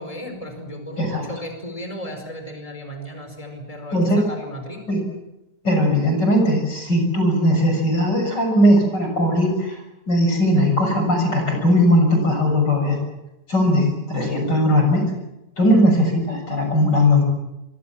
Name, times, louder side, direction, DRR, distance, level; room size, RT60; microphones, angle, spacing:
voice 1, 0.0-4.8 15.7-15.8, equal, 20° left, 5 dB, 5.0 m, -35 dB
voice 2, 5.6-9.8 10.1-13.0 13.5-15.0 15.6-17.2, equal, 85° left, 3 dB, 7.7 m, -18 dB
25.0 x 24.5 x 7.5 m, 0.93 s
omnidirectional pair, 1.8 m